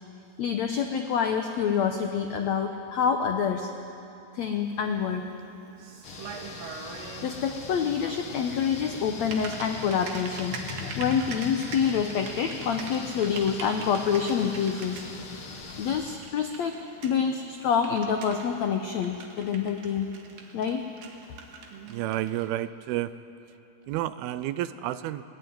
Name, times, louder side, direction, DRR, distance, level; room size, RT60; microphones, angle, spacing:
voice 1, 0.4-3.7 4.3-5.3 7.2-15.0 15.8-20.1 20.5-20.8, left 7 dB, 85° left, 5 dB, 1.5 m, -27 dB
Typing, 4.4-22.5, right 4 dB, 65° right, 3.3 m, -44 dB
sound 1, 6.0-16.2, left 4 dB, 45° left, 1.9 m, -41 dB
voice 2, 21.9-23.1 23.9-25.2, right 14 dB, 80° right, 14 dB, 2.6 m, -30 dB
21.0 x 19.0 x 9.5 m, 2.8 s
omnidirectional pair, 4.5 m